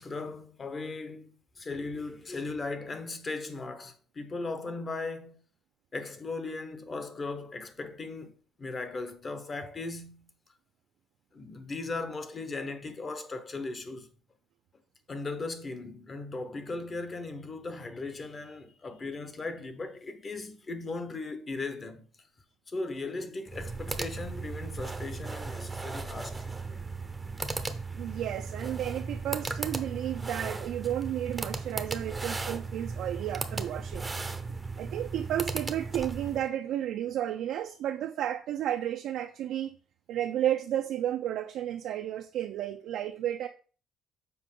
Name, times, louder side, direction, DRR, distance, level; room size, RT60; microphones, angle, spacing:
voice 1, 0.0-5.4 5.9-10.3 11.3-14.1 15.1-22.0 22.7-26.9 34.5-34.6, left 3 dB, 30° left, 1.0 m, -38 dB
sound 1, 23.5-36.5, right 3 dB, 15° right, 0.7 m, -36 dB
voice 2, 28.0-34.1 34.8-39.7 40.1-43.5, right 11 dB, 70° right, 0.5 m, -32 dB
6.9 x 4.6 x 3.8 m
cardioid pair, 120°, 0 cm